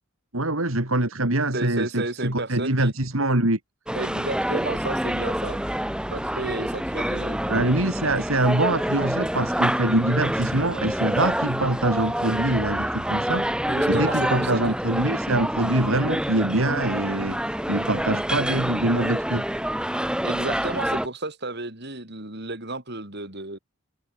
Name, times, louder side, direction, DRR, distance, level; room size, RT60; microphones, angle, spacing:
voice 1, 0.3-3.6 7.5-13.5 13.9-17.4 17.7-19.5, right 2 dB, 80° right, 3.6 m, -24 dB
voice 2, 1.5-2.9 3.9-5.6 6.1-8.3 13.7-14.6 20.2-23.6, right 2 dB, 55° right, 6.0 m, -32 dB
sound 1, 3.9-21.1, equal, 5° right, 6.5 m, -27 dB
head